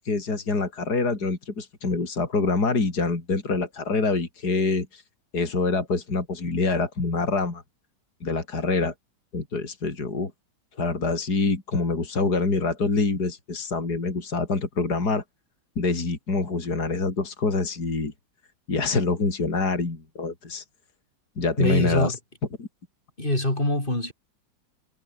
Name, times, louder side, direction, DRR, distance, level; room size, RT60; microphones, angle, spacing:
voice 1, 0.0-5.0 5.3-7.6 8.2-8.9 9.3-10.3 10.8-15.2 15.8-18.1 18.7-20.6 21.4-22.1 22.6-22.7, left 3 dB, 55° left, 4.4 m, -25 dB
voice 2, 21.6-22.2 23.2-24.1, left 1 dB, 25° left, 5.5 m, -24 dB
omnidirectional pair, 2.0 m